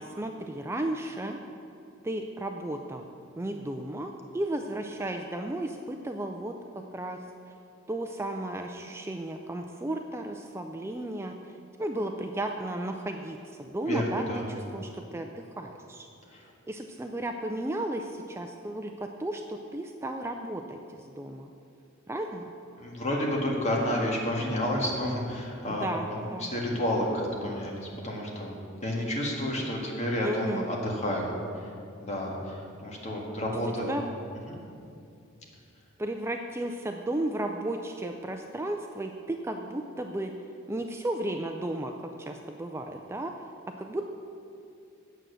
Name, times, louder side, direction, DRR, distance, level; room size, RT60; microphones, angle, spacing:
voice 1, 0.0-1.4 2.0-3.0 3.4-7.2 7.5-7.6 7.9-16.1 16.7-21.5 22.1-22.4 25.7-26.5 30.2-30.7 33.9-34.0 36.0-40.3 40.7-41.9 42.2-43.5 43.8-44.1, right 1 dB, 10° right, 4 dB, 0.4 m, -34 dB
voice 2, 13.9-14.4 16.3-16.4 22.8-28.5 28.8-31.3 31.6-31.7 32.0-33.9 34.5-34.6, left 1 dB, 35° left, -2 dB, 1.8 m, -30 dB
9.2 x 7.5 x 6.4 m, 2.5 s
head